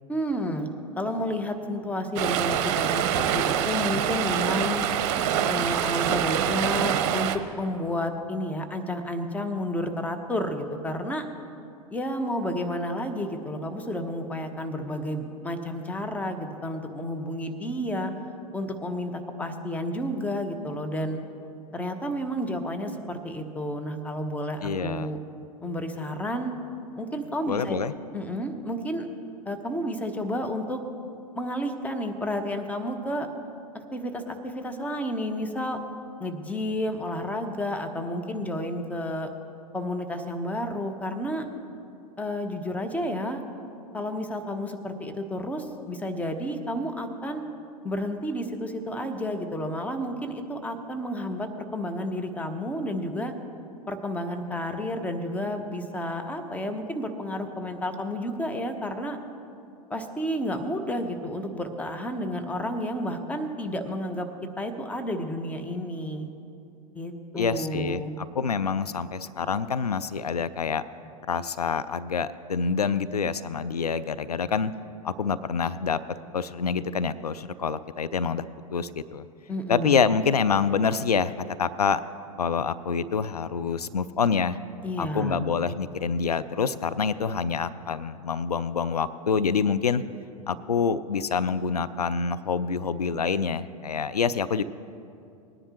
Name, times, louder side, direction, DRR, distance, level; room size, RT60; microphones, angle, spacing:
voice 1, 0.1-0.7 1.0-4.8 5.4-11.3 11.9-18.1 18.5-21.2 21.7-25.2 25.6-26.5 27.0-27.8 28.1-29.1 29.5-30.8 31.3-33.3 33.7-35.8 36.2-39.3 39.7-41.5 42.2-43.4 43.9-47.4 47.8-53.3 53.9-59.2 59.9-64.3 64.6-66.3 66.9-68.2 79.5-79.9 84.8-85.5, left 1 dB, 5° left, 5 dB, 1.0 m, -31 dB
Stream, 2.2-7.4, right 9 dB, 50° right, 0.8 m, -25 dB
voice 2, 24.6-25.1 27.5-27.9 67.4-70.8 71.3-74.7 75.0-76.0 76.3-79.2 79.7-82.0 82.4-84.6 85.0-90.0 90.5-94.6, left 6 dB, 85° left, 14 dB, 0.4 m, -26 dB
19.5 x 10.0 x 3.0 m, 2.6 s
figure-of-eight pair, 95°, 19 cm